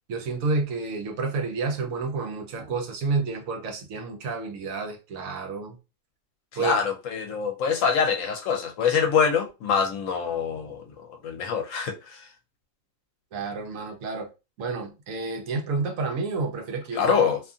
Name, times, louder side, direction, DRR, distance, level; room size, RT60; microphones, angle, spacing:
voice 1, 0.1-5.8 6.5-6.8 13.3-14.3 14.6-17.2, right 4 dB, 75° right, 1.0 m, -30 dB
voice 2, 6.5-12.3 16.9-17.4, left 6 dB, 70° left, 0.9 m, -25 dB
2.7 x 2.5 x 2.4 m
omnidirectional pair, 1.5 m